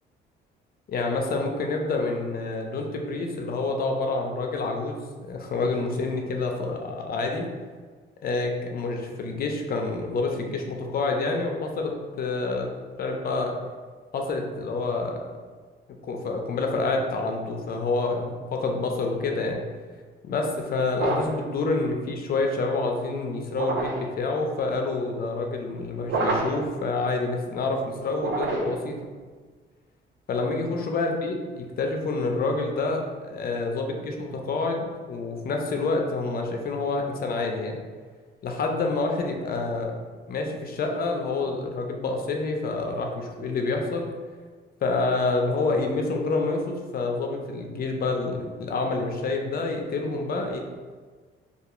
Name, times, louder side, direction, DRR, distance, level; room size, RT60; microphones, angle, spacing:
voice 1, 0.9-7.4 8.2-11.9 12.2-12.7 13.0-13.5 14.1-15.2 16.0-19.6 20.2-29.0 30.3-37.8 38.4-39.9 40.3-44.1 44.8-50.6, left 3 dB, 50° left, 2 dB, 0.5 m, -28 dB
sound 1, 20.9-21.5 23.5-24.1 26.0-26.7 28.1-28.9, right 2 dB, 70° right, 0.5 m, -28 dB
2.3 x 2.3 x 2.9 m, 1.5 s
cardioid pair, 90°, 20 cm